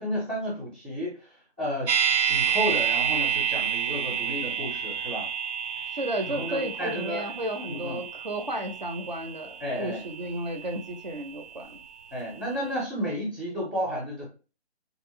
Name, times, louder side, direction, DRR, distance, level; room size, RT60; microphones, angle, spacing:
voice 1, 0.0-1.9 2.2-5.3 6.3-7.2 7.7-8.0 9.6-10.0 12.1-14.3, equal, 10° left, -4 dB, 0.5 m, -32 dB
sound 1, 1.9-11.9 12.2-12.3, right 8 dB, 90° right, 0.6 m, -30 dB
voice 2, 5.9-11.8, right 1 dB, 45° right, 4 dB, 0.4 m, -33 dB
3.2 x 2.8 x 2.4 m, 0.34 s
hypercardioid pair, 160°, 34 cm